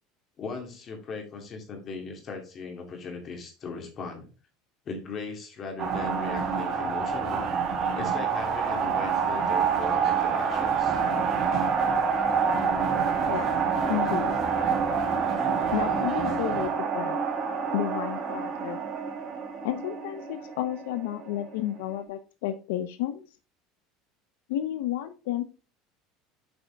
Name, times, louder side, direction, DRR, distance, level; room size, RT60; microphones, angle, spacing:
voice 1, 0.4-4.3 4.8-7.5 7.9-11.0, left 4 dB, 35° left, 3 dB, 2.6 m, -38 dB
sound 1, 5.8-21.6, right 6 dB, 40° right, 1.8 m, -27 dB
voice 2, 13.9-14.3 15.7-17.2 17.7-18.8 19.6-23.2 24.5-25.4, left 12 dB, 90° left, 10 dB, 0.7 m, -31 dB
7.9 x 5.2 x 3.4 m, 0.34 s
cardioid pair, 150°, 0 cm